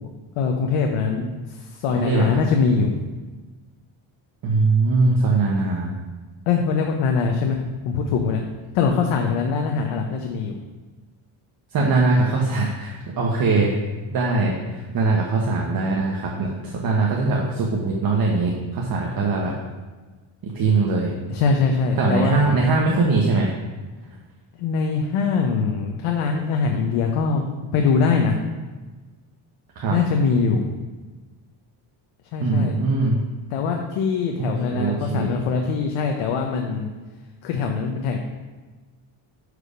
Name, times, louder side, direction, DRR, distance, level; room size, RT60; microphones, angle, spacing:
voice 1, 0.4-1.3 1.7-2.9 6.5-7.6 7.8-8.4 8.7-10.5 21.3-22.4 24.6-27.4 27.7-28.3 29.9-30.6 32.3-32.7 33.5-36.9 37.4-38.2, left 5 dB, 85° left, 2 dB, 0.9 m, -22 dB
voice 2, 1.9-2.4 4.4-5.9 11.7-13.8 14.1-19.6 20.4-21.1 22.0-23.5 29.8-30.0 32.4-33.2 34.4-35.3, right 3 dB, 45° right, -2 dB, 1.1 m, -21 dB
6.6 x 4.9 x 4.9 m, 1.3 s
cardioid pair, 110°, 49 cm